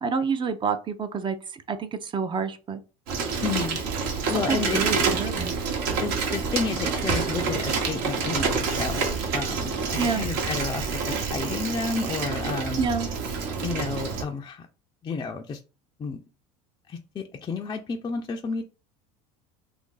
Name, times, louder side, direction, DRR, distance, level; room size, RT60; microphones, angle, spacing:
voice 1, 0.0-2.8 4.3-5.5 10.0-10.3 12.8-13.1, right 5 dB, 30° right, 0.6 m, -28 dB
Bicycle, 3.1-14.2, right 5 dB, 70° right, 1.1 m, -27 dB
voice 2, 3.4-3.8 4.3-5.3 6.0-12.9 13.6-14.7 15.0-15.6 16.0-16.2 16.9-18.6, left 5 dB, 25° left, 0.4 m, -31 dB
2.7 x 2.6 x 3.7 m
supercardioid pair, 100°, 17 cm